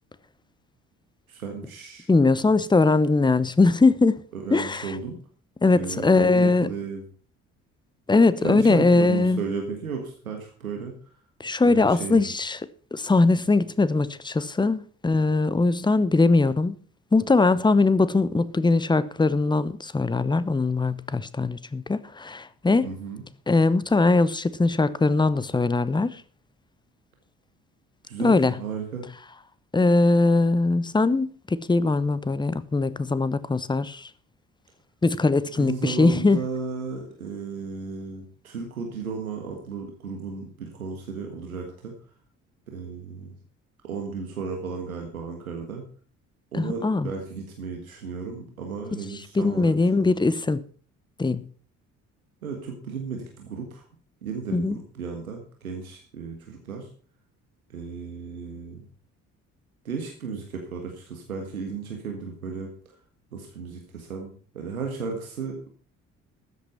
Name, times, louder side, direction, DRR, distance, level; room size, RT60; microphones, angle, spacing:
voice 1, 1.3-2.1 4.3-5.2 5.7-7.0 8.4-11.1 11.7-12.3 22.8-23.2 28.0-29.1 35.5-41.9 42.7-43.3 43.8-45.8 46.5-49.7 50.0-50.1 52.4-53.8 54.2-56.9 57.7-58.8 59.8-62.7 63.3-65.7, right 5 dB, 85° right, 1.6 m, -34 dB
voice 2, 2.1-4.2 4.5-4.9 5.6-6.7 8.1-9.4 11.4-12.6 12.9-16.8 17.1-22.9 23.5-26.2 28.2-28.5 29.7-34.1 35.0-36.4 46.5-47.1 49.3-50.6 51.2-51.5 54.5-54.8, left 3 dB, 10° left, 0.8 m, -21 dB
13.0 x 8.2 x 5.7 m
figure-of-eight pair, 45°, 42 cm